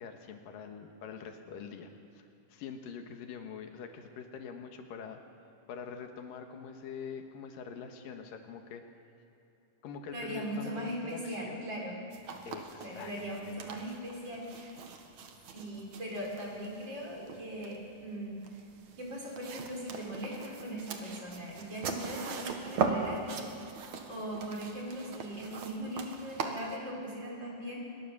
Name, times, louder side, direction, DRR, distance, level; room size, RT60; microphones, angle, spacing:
voice 1, 0.0-5.2 5.7-8.8 9.8-11.7 12.4-13.8, left 6 dB, 85° left, 5 dB, 3.2 m, -44 dB
voice 2, 10.1-12.0 12.8-14.8 15.5-18.4 19.0-23.5 24.1-27.8, right 1 dB, 30° right, -2 dB, 5.9 m, -39 dB
sound 1, 12.1-26.8, right 5 dB, 60° right, 2.8 m, -40 dB
22.5 x 21.5 x 7.3 m, 2.8 s
omnidirectional pair, 3.8 m